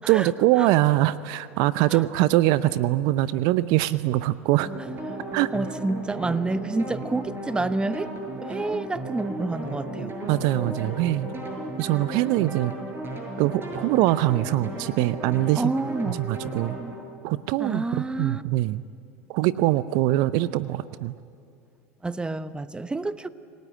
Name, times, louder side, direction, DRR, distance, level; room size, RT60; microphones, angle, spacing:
voice 1, 0.1-4.7 5.3-5.5 10.0-11.3 11.8-12.7 13.4-15.7 16.1-16.8 17.2-18.8 19.3-21.1, right 16 dB, 55° right, 16 dB, 0.6 m, -23 dB
sound 1, 4.6-17.0, right 1 dB, 30° right, 7.2 m, -35 dB
voice 2, 5.5-8.1 8.4-10.1 15.6-16.2 17.6-18.4 22.0-23.3, right 3 dB, 10° right, 14 dB, 0.9 m, -28 dB
27.5 x 18.5 x 8.9 m, 2.4 s
hypercardioid pair, 80°, 8 cm